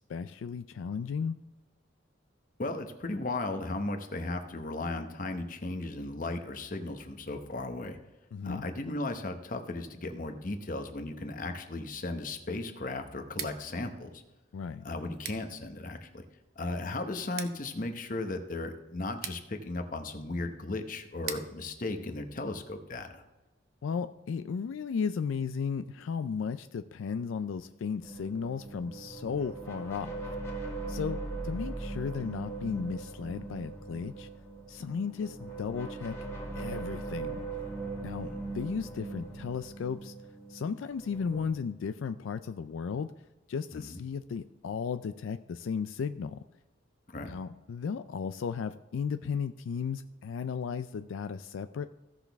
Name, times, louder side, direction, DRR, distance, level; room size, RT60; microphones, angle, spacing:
voice 1, 0.0-1.4 8.3-8.6 14.5-14.9 23.8-30.2 30.9-34.3 34.7-36.2 36.5-37.4 38.0-40.1 40.5-43.1 43.5-46.4 47.3-51.9, left 6 dB, 80° left, 11 dB, 0.3 m, -35 dB
voice 2, 2.6-8.0 8.4-14.2 14.8-16.2 16.6-23.2 38.2-38.4 43.7-44.0 47.1-47.3, left 2 dB, 45° left, 6 dB, 0.9 m, -36 dB
Scissors, 13.2-23.1, right 8 dB, 50° right, 0.7 m, -47 dB
sound 1, 28.0-41.5, right 3 dB, 15° left, 1.8 m, -40 dB
16.0 x 6.0 x 3.5 m, 1.0 s
head